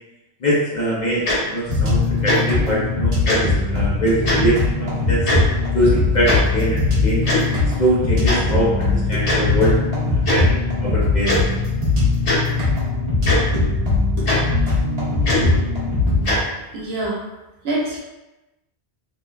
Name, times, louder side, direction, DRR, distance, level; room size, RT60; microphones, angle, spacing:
voice 1, 0.4-3.4 3.7-5.2 5.7-7.2 7.8-9.7 10.1-10.5 10.8-11.6, equal, 50° left, -6 dB, 0.6 m, -22 dB
Tick-tock, 1.2-1.4 2.2-2.4 3.2-3.4 4.2-4.4 5.2-5.4 6.3-6.4 7.2-7.4 8.2-8.4 9.2-9.4 10.2-10.4 11.2-11.4 12.2-12.4 13.2-13.4 14.2-14.4 15.2-15.4 16.2-16.4, left 2 dB, 90° left, 1.2 m, -20 dB
sound 1, 1.7-16.4, left 3 dB, 40° right, 0.7 m, -20 dB
voice 2, 16.7-17.2 17.6-18.0, right 1 dB, 70° right, -5 dB, 0.9 m, -24 dB
2.7 x 2.1 x 2.2 m, 1.0 s
omnidirectional pair, 1.1 m